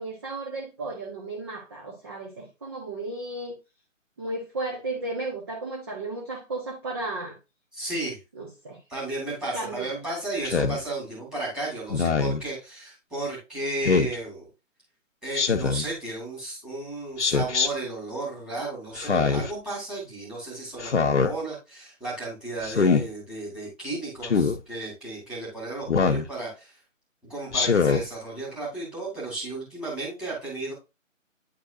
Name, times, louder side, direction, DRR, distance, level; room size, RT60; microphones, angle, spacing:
voice 1, 0.0-3.5 4.2-7.4 8.4-8.8 9.5-9.9, right 2 dB, 20° right, -2 dB, 0.8 m, -34 dB
voice 2, 7.7-8.2 8.9-14.5 15.2-26.7 27.2-30.7, right 2 dB, ahead, -5 dB, 2.2 m, -34 dB
Speech synthesizer, 10.4-10.8 11.9-12.4 13.8-14.2 15.3-15.9 17.2-17.7 19.0-19.5 20.8-21.3 22.6-23.0 24.2-24.6 25.9-26.3 27.5-28.0, left 5 dB, 60° left, 1.0 m, -23 dB
9.7 x 4.1 x 2.7 m, 0.27 s
figure-of-eight pair, 155°, 39 cm